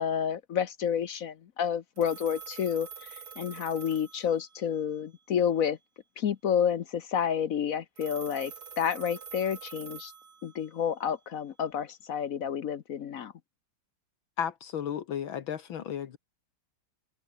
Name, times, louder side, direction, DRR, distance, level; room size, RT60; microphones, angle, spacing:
voice 1, 0.0-2.9 3.4-5.8 6.2-10.1 10.4-13.3, left 8 dB, 55° left, 1.0 m, -30 dB
Telephone, 2.0-4.8 8.0-10.8, right 6 dB, 50° right, 2.4 m, -46 dB
voice 2, 14.4-16.2, left 8 dB, 75° left, 2.0 m, -34 dB
omnidirectional pair, 2.3 m